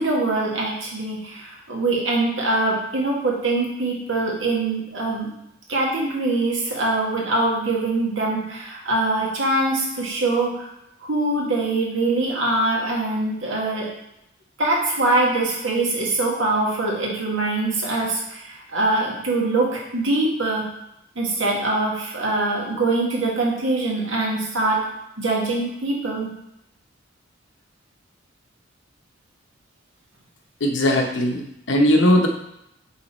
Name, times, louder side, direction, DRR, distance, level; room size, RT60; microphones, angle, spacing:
voice 1, 0.0-5.3 5.7-10.7 11.0-13.9 14.6-20.7 21.2-24.8 25.2-26.3, right 2 dB, 85° right, -2 dB, 1.7 m, -23 dB
voice 2, 30.6-32.3, equal, 70° left, 3 dB, 0.9 m, -19 dB
5.6 x 3.9 x 4.3 m, 0.82 s
head